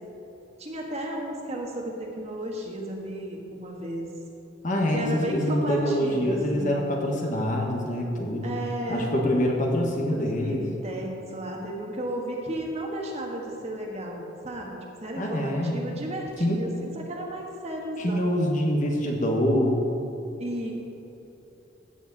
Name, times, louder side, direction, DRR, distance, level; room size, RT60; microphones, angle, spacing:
voice 1, 0.6-4.1 4.9-6.8 8.4-9.1 10.1-18.3 20.4-20.7, right 1 dB, 35° right, 0 dB, 1.5 m, -34 dB
voice 2, 4.6-8.5 8.9-10.6 15.2-15.8 16.4-16.7 18.0-19.9, equal, 45° left, 0 dB, 1.5 m, -25 dB
16.0 x 7.2 x 4.1 m, 2.9 s
head